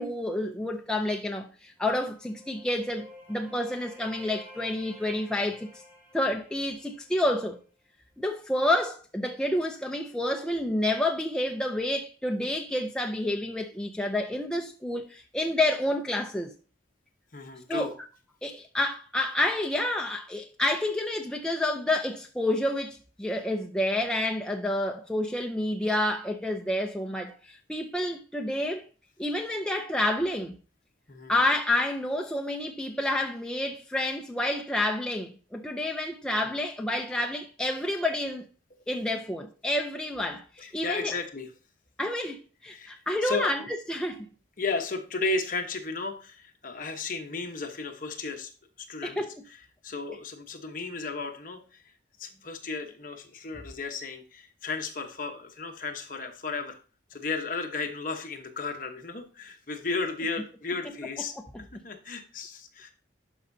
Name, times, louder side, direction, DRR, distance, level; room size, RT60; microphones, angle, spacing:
voice 1, 0.0-5.7 6.1-7.6 8.2-16.5 17.7-17.9 18.4-28.8 29.2-30.5 31.3-38.4 38.9-41.2 42.0-44.3 49.0-49.3, left 1 dB, 5° left, 0.4 m, -29 dB
sound 1, 1.8-7.5, left 1 dB, 10° right, 2.9 m, -51 dB
voice 2, 17.3-17.9 31.1-31.3 40.6-41.5 42.7-42.9 43.2-43.5 44.6-48.5 48.8-49.2 49.8-51.8 52.2-56.8 57.1-61.3 61.7-62.9, left 3 dB, 45° left, 1.0 m, -34 dB
11.5 x 5.3 x 2.7 m
head